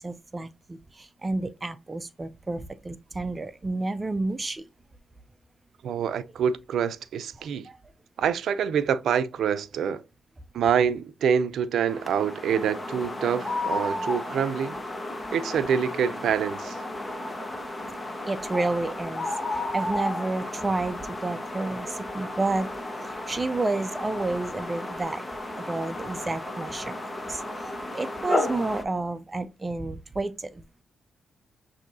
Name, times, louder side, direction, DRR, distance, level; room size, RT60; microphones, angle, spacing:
voice 1, 0.0-4.6 7.7-7.8 18.3-22.7 23.0-25.3 25.7-30.6, right 2 dB, 25° right, 0.4 m, -30 dB
voice 2, 5.8-7.7 8.2-10.0 10.5-14.8 15.3-16.8, right 7 dB, 80° right, 0.5 m, -26 dB
sound 1, 11.9-28.8, left 1 dB, 25° left, 0.9 m, -33 dB
7.0 x 2.7 x 2.6 m
cardioid pair, 75°, 0 cm